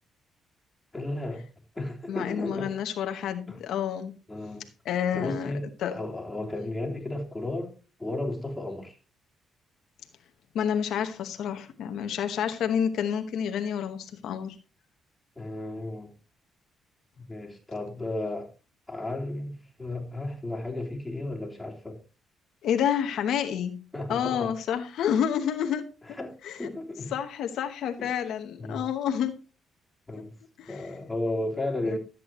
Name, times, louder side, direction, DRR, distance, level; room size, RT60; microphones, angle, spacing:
voice 1, 0.9-1.4 1.7-2.7 3.5-3.6 4.3-4.7 5.1-9.0 15.3-16.1 17.2-18.5 18.9-22.0 23.9-24.5 26.0-27.1 28.0-28.1 28.6-28.8 30.1-30.3 30.7-32.0, left 2 dB, 10° left, 3.4 m, -34 dB
voice 2, 2.1-4.1 4.8-5.5 5.8-6.0 10.5-14.6 22.6-25.9 26.4-26.7 27.1-29.3 30.6-30.8 31.9-32.0, left 8 dB, 75° left, 1.0 m, -29 dB
12.5 x 8.5 x 3.0 m
cardioid pair, 90°, 0 cm